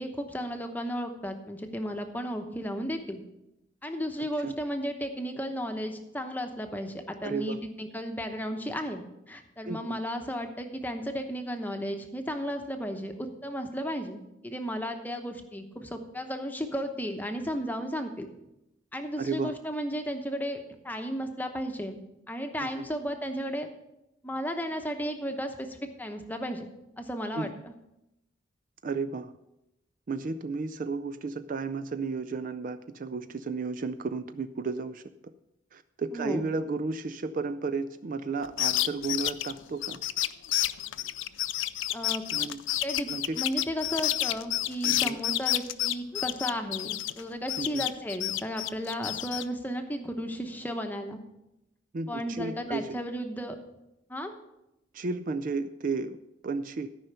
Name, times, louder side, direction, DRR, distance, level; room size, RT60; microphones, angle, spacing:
voice 1, 0.0-3.2 3.8-18.3 18.9-23.7 24.2-26.7 27.0-27.7 36.1-36.4 41.9-42.2 42.8-43.1 43.4-51.2 52.1-53.6 54.1-54.3, equal, 10° left, 5 dB, 0.9 m, -34 dB
voice 2, 4.2-4.6 7.2-7.6 9.7-10.0 19.2-19.5 22.6-22.8 27.4-27.5 28.8-29.3 30.1-35.0 35.7-40.0 42.3-42.6 43.1-43.4 44.8-45.2 47.6-47.8 51.9-53.0 54.9-56.2 56.4-56.9, right 4 dB, 45° right, 10 dB, 0.4 m, -33 dB
sound 1, 38.4-47.2 47.5-49.4, left 14 dB, 75° left, 0.4 m, -29 dB
13.0 x 5.6 x 6.8 m, 0.89 s
head